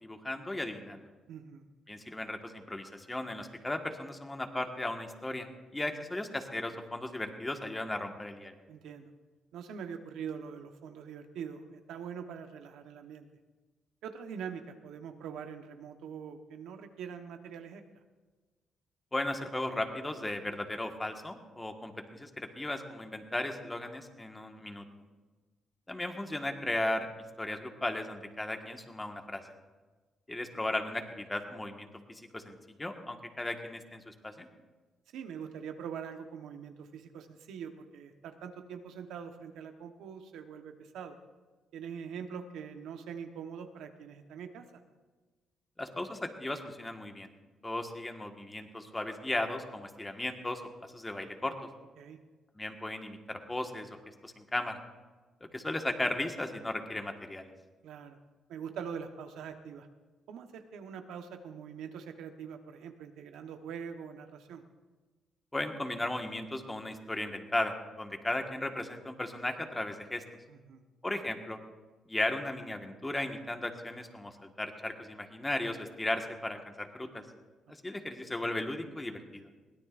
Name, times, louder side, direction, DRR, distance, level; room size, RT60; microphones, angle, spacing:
voice 1, 0.0-1.1 1.9-5.5 5.7-8.5 19.1-24.8 25.9-27.1 27.4-29.4 30.3-34.5 45.8-47.3 47.6-50.6 50.9-51.5 52.6-54.0 54.2-54.8 55.4-57.5 65.5-70.2 71.0-71.6 72.1-77.2 77.8-79.5, left 1 dB, 15° left, 4 dB, 1.6 m, -36 dB
voice 2, 1.3-1.7 8.7-9.1 9.5-13.3 14.0-17.8 35.1-41.2 41.7-44.8 52.0-52.2 57.8-58.2 58.5-59.9 60.3-64.6 70.5-70.8 77.9-78.0, right 7 dB, 85° right, 6 dB, 1.2 m, -43 dB
22.0 x 17.0 x 2.6 m, 1.3 s
cardioid pair, 90°, 0 cm